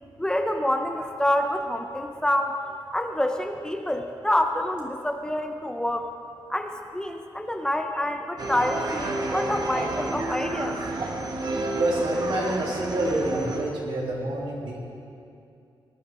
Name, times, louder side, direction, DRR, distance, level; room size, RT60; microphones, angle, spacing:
voice 1, 0.2-2.6 2.9-6.1 6.5-10.8, left 1 dB, 10° left, 5 dB, 0.7 m, -27 dB
sound 1, 8.4-13.6, right 2 dB, 50° right, 1.2 m, -30 dB
voice 2, 11.7-14.8, right 1 dB, 80° right, -4 dB, 3.1 m, -27 dB
18.5 x 11.0 x 3.7 m, 2.5 s
wide cardioid pair, 135°, 9 cm